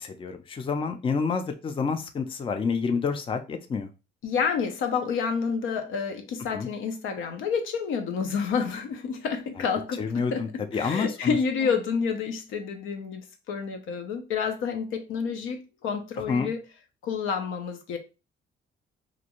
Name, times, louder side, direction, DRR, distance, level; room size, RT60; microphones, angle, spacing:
voice 1, 0.0-3.9 6.5-6.7 9.6-9.7 10.0-11.4 11.6-11.7 16.2-16.5, left 5 dB, 25° left, 0.4 m, -28 dB
voice 2, 4.2-16.6 17.0-18.0, left 6 dB, 85° left, 0.6 m, -29 dB
2.5 x 2.2 x 2.9 m
cardioid pair, 90°, 20 cm